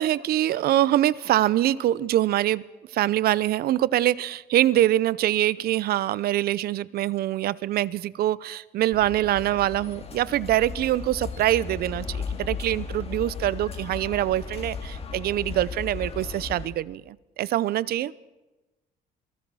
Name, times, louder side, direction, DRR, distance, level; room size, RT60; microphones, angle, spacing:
voice 1, 0.0-2.6 2.9-18.1, right 13 dB, 65° right, 20 dB, 0.7 m, -24 dB
sound 1, 8.9-16.7, left 5 dB, 35° left, 2.2 m, -36 dB
27.0 x 19.5 x 6.3 m, 1.1 s
cardioid pair, 110°, 17 cm